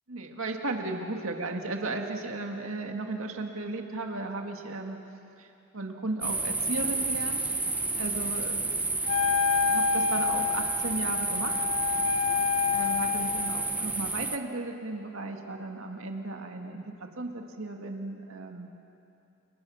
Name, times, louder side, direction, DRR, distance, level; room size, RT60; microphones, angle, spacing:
voice 1, 0.1-5.0 5.4-7.4 8.0-8.7 9.7-11.5 12.7-18.7, right 2 dB, 75° right, 3 dB, 2.0 m, -35 dB
sound 1, 6.2-14.4, right 3 dB, 5° right, 0.9 m, -30 dB
Wind instrument woodwind instrument, 9.1-13.6, left 6 dB, 80° left, 2.1 m, -28 dB
29.5 x 29.5 x 6.4 m, 2.8 s
head